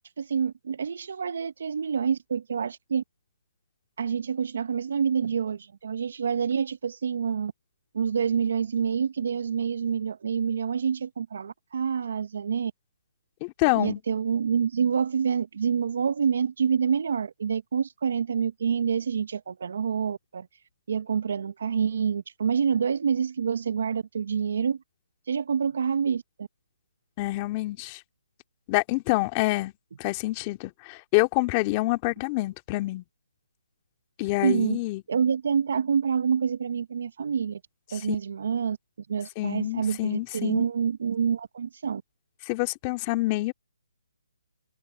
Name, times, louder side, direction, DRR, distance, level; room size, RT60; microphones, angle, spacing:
voice 1, 0.2-3.0 4.0-7.5 7.9-12.7 13.7-20.5 20.9-24.8 25.3-26.5 34.4-34.8 35.1-37.6 37.9-42.0, right 7 dB, 60° right, 0.8 m, -27 dB
voice 2, 13.4-14.0 27.2-28.0 28.7-29.7 30.0-33.0 34.2-35.0 39.4-40.7 42.5-43.5, left 21 dB, 25° left, 2.1 m, -27 dB
hypercardioid pair, 160°, 0 cm